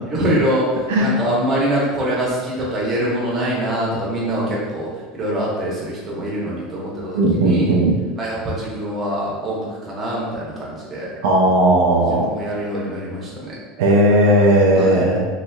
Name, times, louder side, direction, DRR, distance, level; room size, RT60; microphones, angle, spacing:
voice 1, 0.0-7.8 8.2-11.1 11.9-13.5 14.7-15.0, right 1 dB, 25° right, -5 dB, 1.0 m, -24 dB
voice 2, 7.1-8.0 11.2-12.3 13.8-15.3, right 1 dB, 85° right, -1 dB, 0.4 m, -16 dB
3.0 x 2.8 x 2.2 m, 1.4 s
supercardioid pair, 125°, 0 cm